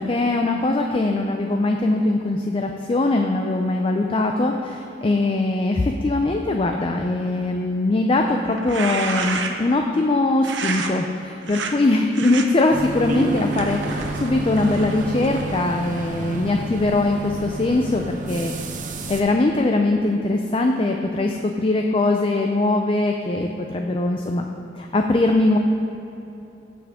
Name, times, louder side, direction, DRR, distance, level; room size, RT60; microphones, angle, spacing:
voice 1, 0.0-18.5 19.1-24.4 24.8-25.6, left 2 dB, 30° left, 3 dB, 0.4 m, -21 dB
sound 1, 8.5-9.7 10.4-10.9 11.4-11.7 12.1-12.5 13.1-15.7, right 4 dB, 80° right, 0.8 m, -30 dB
sound 2, 12.7-19.2, right 2 dB, 45° right, 0.7 m, -30 dB
17.0 x 5.9 x 3.6 m, 2.9 s
head